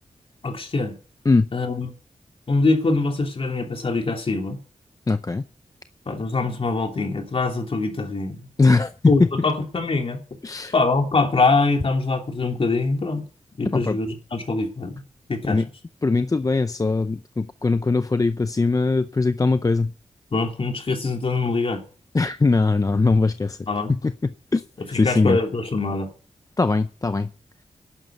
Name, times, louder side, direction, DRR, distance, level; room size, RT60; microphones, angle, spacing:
voice 1, 0.4-0.9 1.5-1.9 2.5-4.6 6.1-8.4 9.0-10.2 10.7-13.2 13.6-15.0 15.3-15.6 20.3-21.8 23.7-23.9 24.9-26.1, left 3 dB, 50° left, 3.0 m, -23 dB
voice 2, 5.1-5.4 8.6-8.9 9.2-9.3 10.4-10.7 13.6-14.0 15.4-15.7 16.0-19.9 22.1-23.6 23.9-24.6 24.9-25.4 26.6-27.3, left 3 dB, 30° left, 0.6 m, -21 dB
11.5 x 7.6 x 9.2 m
wide cardioid pair, 85°, 12 cm